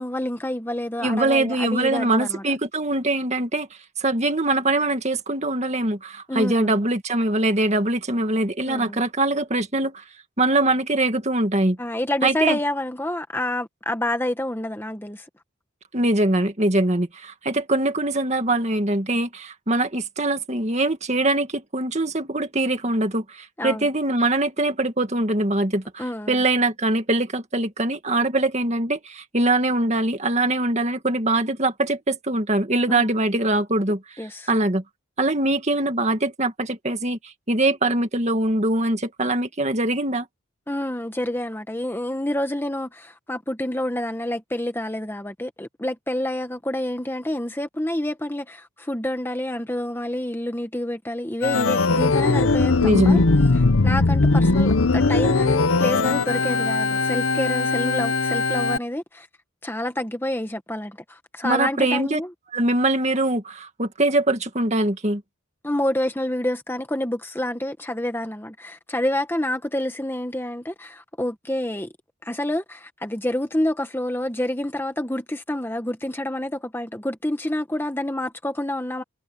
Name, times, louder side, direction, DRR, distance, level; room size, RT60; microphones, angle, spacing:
voice 1, 0.0-2.4 6.3-6.8 8.7-9.0 11.8-15.3 23.6-23.9 26.0-26.4 32.9-33.1 34.2-34.5 40.7-53.2 53.5-59.3 59.6-62.3 65.6-71.9 72.2-79.0, left 1 dB, 10° left, 1.2 m, -28 dB
voice 2, 1.0-3.7 4.0-10.0 10.4-11.8 12.2-12.6 15.9-34.0 34.5-34.8 35.2-40.3 52.8-53.2 61.4-62.2 62.5-65.2, right 2 dB, 30° right, 2.1 m, -22 dB
Organ, 51.4-58.8, left 3 dB, 75° left, 0.9 m, -20 dB
head